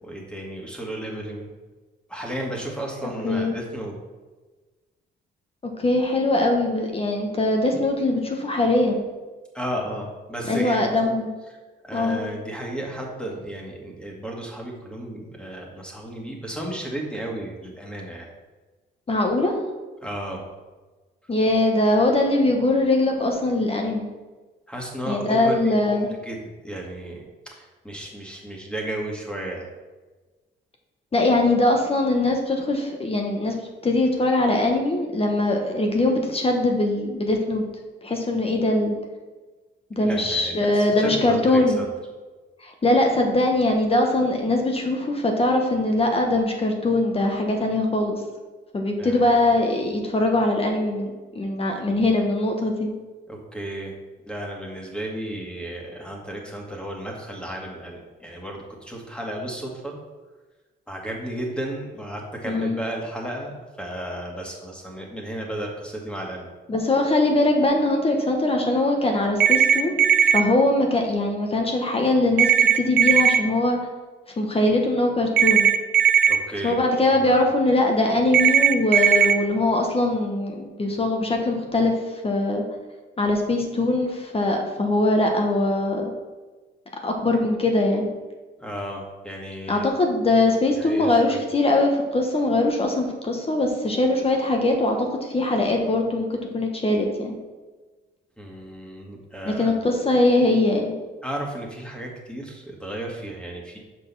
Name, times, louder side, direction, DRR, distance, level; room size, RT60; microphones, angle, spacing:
voice 1, 0.0-1.5 2.1-3.9 9.5-10.9 11.8-18.3 20.0-20.4 24.7-26.4 26.6-27.2 27.5-29.7 40.0-41.9 49.0-49.3 53.3-54.0 54.3-60.0 60.9-66.5 76.3-76.8 77.2-77.4 88.6-89.9 90.8-91.4 98.4-99.8 101.2-103.8, right 1 dB, 5° left, -1 dB, 1.9 m, -33 dB
voice 2, 3.0-3.6 5.8-9.0 10.4-11.3 11.9-12.2 19.1-19.5 21.3-24.1 25.1-26.1 31.1-33.6 33.8-37.6 38.0-38.9 39.9-41.8 42.6-48.2 48.7-52.9 62.4-62.8 66.7-70.0 70.3-73.8 74.4-75.7 76.6-82.6 83.2-86.1 87.0-88.1 89.7-96.3 96.5-97.4 99.4-100.9, left 2 dB, 30° left, 2 dB, 1.2 m, -22 dB
sound 1, 69.4-70.4 72.4-73.4 75.4-76.4 78.3-79.3, right 8 dB, 55° right, 0.6 m, -17 dB
6.3 x 5.3 x 5.6 m, 1.3 s
cardioid pair, 90°, 20 cm